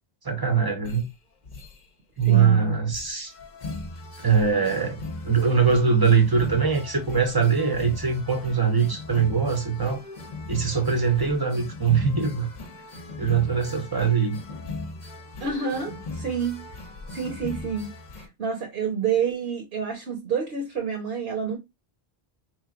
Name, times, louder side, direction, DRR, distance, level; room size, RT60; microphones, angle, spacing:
voice 1, 0.2-1.1 2.2-3.3 4.2-5.0 5.2-10.0 10.5-12.5 13.2-14.4, right 6 dB, 25° right, 0.8 m, -22 dB
sound 1, 0.8-1.1 1.4-1.8 2.2-2.5 2.8-18.3, left 2 dB, 50° left, 0.8 m, -38 dB
voice 2, 2.2-2.8 15.4-16.6 17.1-21.6, right 6 dB, 70° right, 1.2 m, -28 dB
3.8 x 3.2 x 2.5 m
omnidirectional pair, 1.1 m